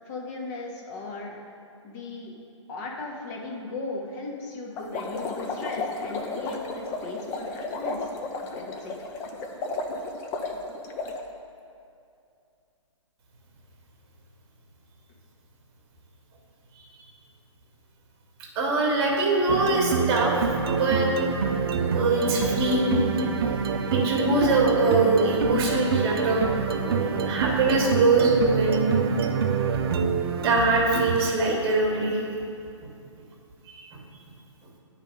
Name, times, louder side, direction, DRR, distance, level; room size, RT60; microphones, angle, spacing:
voice 1, 0.1-1.4 1.8-2.3 2.7-8.0 8.5-9.0, left 3 dB, 35° left, 0 dB, 1.1 m, -37 dB
sound 1, 4.8-11.2, left 3 dB, 15° left, 0.4 m, -33 dB
voice 2, 18.5-20.5 20.8-21.1 21.9-23.0 23.9-29.2 29.5-29.6 29.9-30.1 30.4-32.2 33.7-33.9, right 2 dB, 25° right, -2 dB, 1.3 m, -23 dB
sound 2, 19.5-31.4, right 6 dB, 50° right, 0.5 m, -26 dB
9.4 x 3.3 x 5.1 m, 2.5 s
hypercardioid pair, 135°, 16 cm